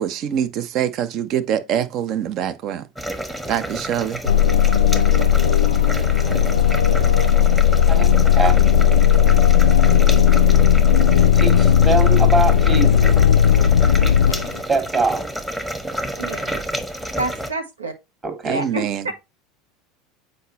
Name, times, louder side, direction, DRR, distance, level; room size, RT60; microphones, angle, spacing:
voice 1, 0.0-2.8 3.5-4.2 18.5-19.1, right 9 dB, 45° right, 0.7 m, -24 dB
sound 1, 2.9-17.5, equal, 5° right, 1.1 m, -30 dB
sound 2, 4.3-14.6, left 9 dB, 75° left, 0.4 m, -15 dB
voice 2, 11.2-13.2 14.7-15.3 17.0-17.2 18.2-18.6, right 3 dB, 30° right, 2.9 m, -23 dB
voice 3, 16.2-16.6 17.2-17.9 18.5-19.1, right 2 dB, 80° right, 1.2 m, -28 dB
8.0 x 4.9 x 3.0 m
figure-of-eight pair, 75°, 0 cm